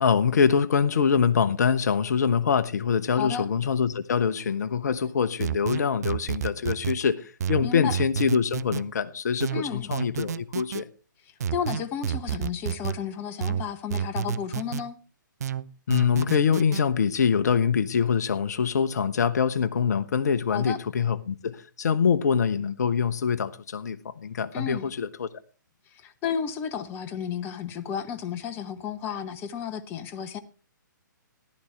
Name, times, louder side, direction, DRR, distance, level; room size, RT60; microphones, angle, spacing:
voice 1, 0.0-10.9 15.9-25.3, left 6 dB, 55° left, 0.8 m, -24 dB
voice 2, 3.1-3.5 7.6-8.0 9.5-9.9 11.2-15.0 20.5-20.8 24.5-24.9 25.9-30.4, left 8 dB, 20° left, 0.9 m, -33 dB
sound 1, 5.4-7.0 7.4-8.8 9.4-10.8 11.4-13.0 13.4-14.8 15.4-16.8, right 8 dB, 50° right, 0.6 m, -30 dB
14.5 x 12.0 x 3.3 m
figure-of-eight pair, 130°, 11 cm